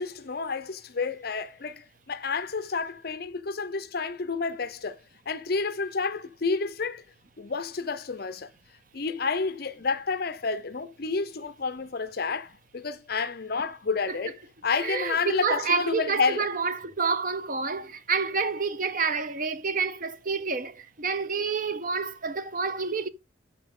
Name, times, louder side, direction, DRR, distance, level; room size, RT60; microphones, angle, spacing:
voice 1, 0.0-5.0 5.3-7.0 7.4-8.5 8.9-14.4 14.6-16.5, left 4 dB, 50° left, 0.7 m, -30 dB
voice 2, 14.8-23.1, right 5 dB, 45° right, 0.7 m, -28 dB
13.0 x 4.5 x 3.8 m
head